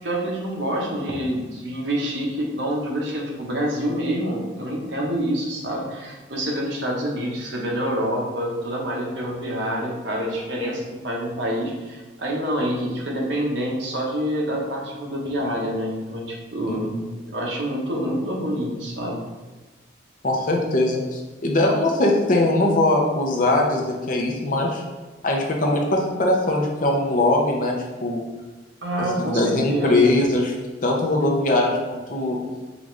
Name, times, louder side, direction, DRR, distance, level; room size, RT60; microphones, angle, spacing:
voice 1, 0.0-16.9 17.3-19.3 28.8-30.2, equal, 75° right, -2 dB, 0.9 m, -27 dB
voice 2, 16.7-17.1 20.2-24.8 25.2-27.8 28.0-28.2 29.2-30.5 30.8-32.4, left 2 dB, 45° left, 0 dB, 0.6 m, -21 dB
4.9 x 2.4 x 3.1 m, 1.3 s
head